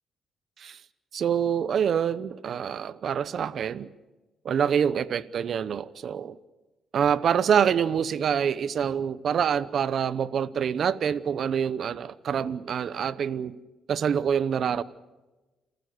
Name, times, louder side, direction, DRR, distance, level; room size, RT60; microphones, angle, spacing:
voice 1, 1.1-3.9 4.4-6.4 6.9-13.5 13.9-14.8, right 8 dB, 60° right, 18 dB, 0.8 m, -26 dB
28.0 x 14.5 x 7.9 m, 1.1 s
cardioid pair, 90°, 0 cm